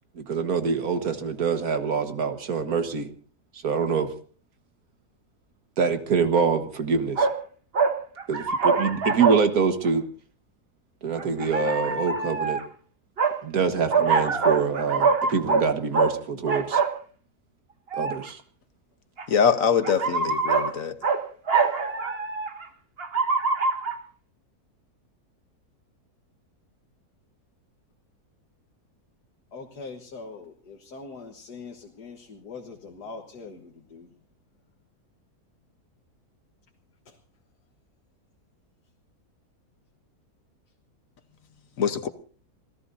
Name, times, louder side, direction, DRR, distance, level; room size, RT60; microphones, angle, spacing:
voice 1, 0.2-3.1 3.5-4.1 5.8-7.3 8.3-10.1 11.0-12.6 13.4-16.8 17.9-18.4, right 5 dB, 70° right, 2.0 m, -25 dB
sound 1, 7.2-7.4 7.7-9.4 9.9-10.0 11.2-12.6 13.2-13.4 13.9-15.7 15.9-16.1 16.5-16.9 17.9-18.3 19.2-19.3 19.8-20.7 21.0-21.2 21.5-22.7 23.0-23.9, right 4 dB, 40° right, 1.3 m, -24 dB
voice 2, 19.3-20.9 41.8-42.1, left 6 dB, 60° left, 1.5 m, -23 dB
voice 3, 29.5-34.1 37.1-37.2, left 4 dB, 85° left, 2.0 m, -42 dB
27.5 x 17.5 x 2.7 m
omnidirectional pair, 1.7 m